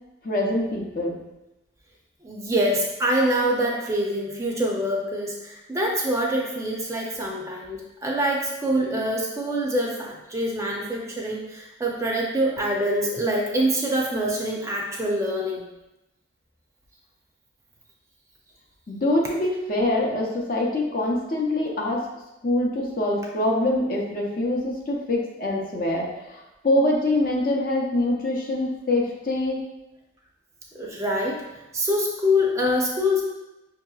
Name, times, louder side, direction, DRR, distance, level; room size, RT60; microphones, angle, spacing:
voice 1, 0.2-1.2 18.9-22.0 22.4-29.6 33.1-33.2, left 1 dB, 50° left, -2 dB, 0.6 m, -24 dB
voice 2, 2.2-15.6 30.7-31.4 31.7-33.2, equal, 15° right, -2 dB, 0.5 m, -25 dB
5.5 x 2.8 x 2.3 m, 0.96 s
head